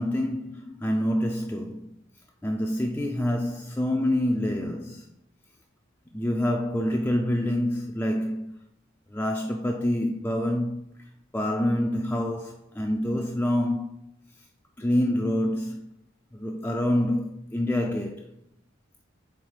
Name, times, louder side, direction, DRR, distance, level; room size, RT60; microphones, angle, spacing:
voice 1, 0.0-1.8 2.4-5.1 6.1-8.6 9.1-10.9 11.3-13.9 14.8-15.9 16.3-18.3, left 1 dB, 10° left, 0.3 m, -26 dB
4.7 x 3.6 x 5.5 m
head